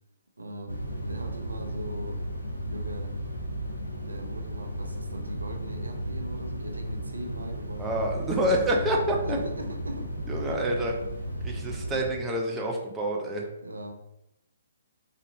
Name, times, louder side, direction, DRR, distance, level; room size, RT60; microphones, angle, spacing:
voice 1, 0.4-2.2 2.7-3.1 4.1-7.9 8.3-8.5 9.2-10.1 13.6-13.9, right 1 dB, 80° right, 4 dB, 0.5 m, -40 dB
sound 1, 0.7-12.1, equal, 85° left, 0.6 m, -34 dB
voice 2, 7.8-9.4 10.3-11.0 11.4-13.5, right 1 dB, 10° right, -1 dB, 0.6 m, -27 dB
4.2 x 2.5 x 2.7 m, 0.87 s
figure-of-eight pair, 125°, 0 cm